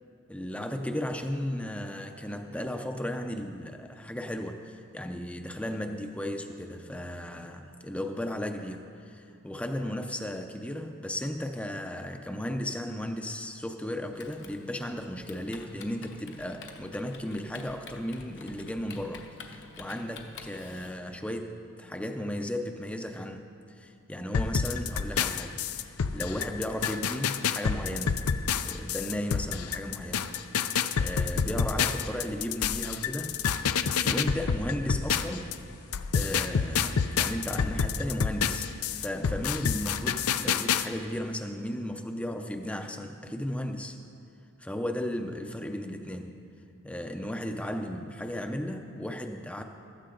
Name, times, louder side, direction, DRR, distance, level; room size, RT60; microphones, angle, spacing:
voice 1, 0.3-28.2 28.6-30.3 31.0-33.4 34.0-35.6 36.1-44.0 44.6-46.4 46.8-49.6, left 1 dB, 5° left, 5 dB, 0.5 m, -35 dB
Typing, 14.1-21.0, left 4 dB, 55° left, 0.9 m, -48 dB
sound 1, 24.3-35.6 35.9-40.9, left 6 dB, 75° left, 0.5 m, -28 dB
15.5 x 13.0 x 3.8 m, 2.6 s
head